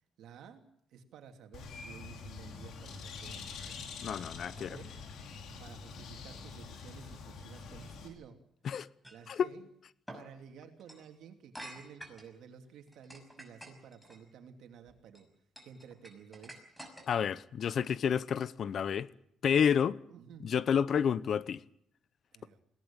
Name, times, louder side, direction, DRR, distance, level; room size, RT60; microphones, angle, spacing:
voice 1, 0.2-0.6 0.9-3.8 4.5-4.9 5.6-8.4 9.1-9.7 10.1-15.3 15.6-16.6 20.1-20.6 22.3-22.6, right 7 dB, 80° right, 2.9 m, -53 dB
Bird, 1.5-8.1, left 5 dB, 75° left, 4.2 m, -46 dB
voice 2, 4.0-4.8 8.6-8.9 9.3-9.5 17.1-19.1 19.4-20.0 20.4-21.6, left 7 dB, 60° left, 0.8 m, -29 dB
sound 1, 9.0-9.2 10.1-10.2 10.8-11.0 11.5-12.3 12.9-14.2 14.9-15.2 15.6-17.3, right 1 dB, ahead, 6.0 m, -48 dB
21.5 x 18.0 x 8.9 m
cardioid pair, 90°, 0 cm